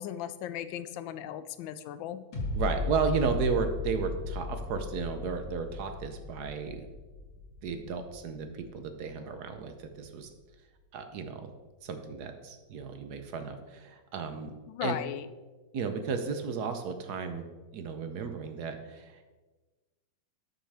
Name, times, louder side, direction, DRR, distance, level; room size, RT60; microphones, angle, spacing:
voice 1, 0.0-2.2 14.7-15.3, left 11 dB, 90° left, 13 dB, 1.3 m, -37 dB
sound 1, 2.3-9.4 9.8-9.9, left 4 dB, 70° left, 2.4 m, -36 dB
voice 2, 2.5-6.9 7.6-10.3 10.9-11.5 11.8-14.5 14.8-14.9 15.7-17.4 17.7-19.3, right 5 dB, 65° right, 7 dB, 1.2 m, -33 dB
12.0 x 6.4 x 3.4 m, 1.3 s
omnidirectional pair, 2.0 m